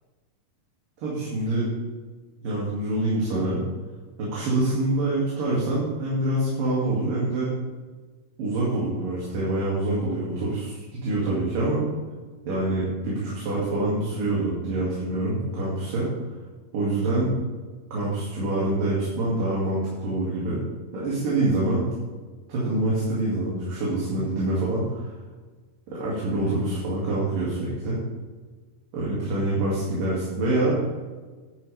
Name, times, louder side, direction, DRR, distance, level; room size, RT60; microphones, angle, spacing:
voice 1, 1.0-1.7 2.4-3.6 4.2-7.5 8.4-11.8 12.4-16.1 16.7-17.3 17.9-20.6 20.9-21.9 22.5-25.1 25.9-28.0 28.9-30.8, right 2 dB, 85° right, -7 dB, 4.2 m, -25 dB
12.5 x 10.0 x 3.5 m, 1.3 s
omnidirectional pair, 3.8 m